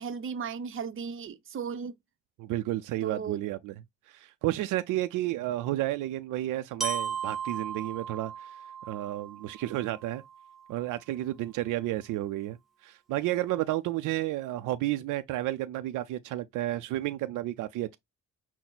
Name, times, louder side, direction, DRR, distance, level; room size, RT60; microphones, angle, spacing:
voice 1, 0.0-1.9 3.0-3.4, right 6 dB, 45° right, 0.7 m, -36 dB
voice 2, 2.4-3.7 4.1-8.6 8.9-10.2 10.7-18.0, right 15 dB, 90° right, 0.5 m, -31 dB
Glockenspiel, 6.8-10.8, right 6 dB, ahead, 1.3 m, -37 dB
6.0 x 2.1 x 3.9 m
cardioid pair, 90°, 30 cm